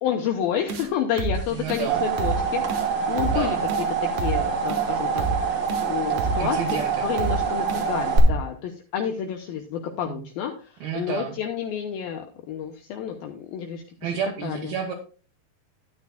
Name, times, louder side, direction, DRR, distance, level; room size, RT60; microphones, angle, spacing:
voice 1, 0.0-3.6 4.1-6.6 7.0-14.1 14.4-14.7, left 9 dB, 75° left, 3 dB, 2.4 m, -30 dB
sound 1, 0.7-0.9 1.2-1.4 1.7-1.9 2.2-2.4 2.7-2.9 3.2-3.4 3.7-3.9 4.2-4.4 4.7-4.8 5.2-5.4 5.7-5.9 6.2-6.4 6.7-6.9 7.2-7.4 7.7-7.9 8.2-8.4, right 4 dB, 90° right, 3.4 m, -28 dB
sound 2, 1.5-8.2, right 6 dB, 40° right, 1.9 m, -26 dB
voice 2, 1.5-2.0 3.2-3.6 6.4-7.1 10.1-10.3 10.8-11.4 14.0-14.9, right 7 dB, 70° right, -1 dB, 3.1 m, -30 dB
12.5 x 9.6 x 2.2 m, 0.36 s
omnidirectional pair, 4.6 m